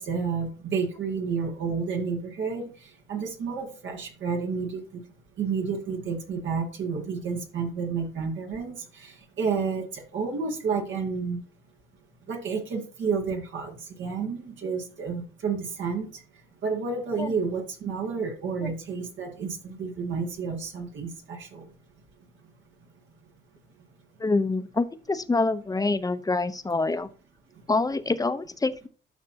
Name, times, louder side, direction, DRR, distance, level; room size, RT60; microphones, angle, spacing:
voice 1, 0.0-2.6 3.1-5.0 5.4-11.4 12.3-16.1 16.6-21.7, right 5 dB, 70° right, 1 dB, 2.1 m, -30 dB
voice 2, 24.2-27.1 27.7-28.9, left 3 dB, 20° left, 11 dB, 0.7 m, -26 dB
11.5 x 5.8 x 2.9 m, 0.38 s
cardioid pair, 90°, 20 cm